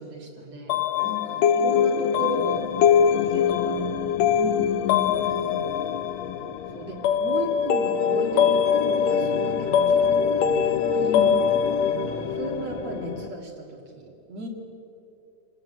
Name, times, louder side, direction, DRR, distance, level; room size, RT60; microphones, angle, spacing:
voice 1, 0.0-2.7 3.1-3.9 5.4-5.8 6.7-11.1 11.8-14.5, right 3 dB, 60° right, -1 dB, 3.4 m, -36 dB
sound 1, 0.7-13.3, left 7 dB, 70° left, 1.9 m, -23 dB
voice 2, 1.5-1.9 4.4-5.1 11.0-11.4, left 5 dB, 35° left, -2 dB, 2.3 m, -32 dB
26.5 x 19.5 x 7.5 m, 2.8 s
omnidirectional pair, 3.4 m